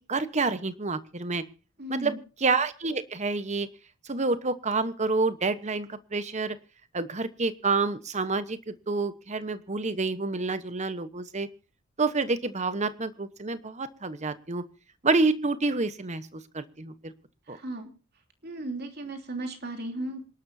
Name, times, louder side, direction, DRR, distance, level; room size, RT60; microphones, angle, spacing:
voice 1, 0.1-1.4 1.9-3.7 4.1-6.6 6.9-11.5 12.0-14.6 15.0-17.1 17.5-17.6, right 3 dB, 35° right, 12 dB, 1.1 m, -28 dB
voice 2, 1.8-2.2 17.5-17.9 18.4-20.2, right 1 dB, 50° right, 4 dB, 3.1 m, -35 dB
27.0 x 12.0 x 2.7 m, 0.35 s
head